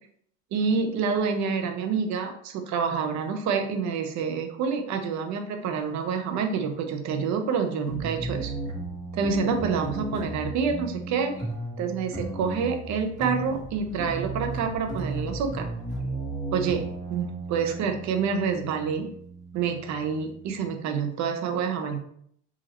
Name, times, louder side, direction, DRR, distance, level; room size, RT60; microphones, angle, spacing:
voice 1, 0.5-8.5 9.1-11.3 11.8-15.7 16.5-16.8 17.1-19.1 19.5-22.0, right 6 dB, 55° right, 5 dB, 0.9 m, -27 dB
sound 1, 7.9-20.7, right 2 dB, 10° left, 1.7 m, -35 dB
4.8 x 2.8 x 3.0 m, 0.66 s
supercardioid pair, 95°, 34 cm